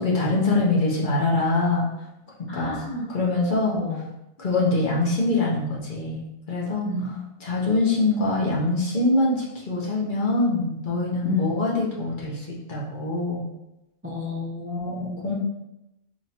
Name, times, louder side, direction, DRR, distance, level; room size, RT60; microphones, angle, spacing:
voice 1, 0.0-1.9 2.5-2.8 3.1-3.8 4.4-6.9 7.4-13.4 14.9-15.3, left 2 dB, 45° left, -4 dB, 1.0 m, -24 dB
voice 2, 2.5-3.1 3.7-4.0 6.8-7.1 11.2-11.6 14.0-15.3, left 3 dB, 20° right, -5 dB, 0.4 m, -30 dB
5.0 x 2.6 x 2.8 m, 0.90 s
omnidirectional pair, 1.2 m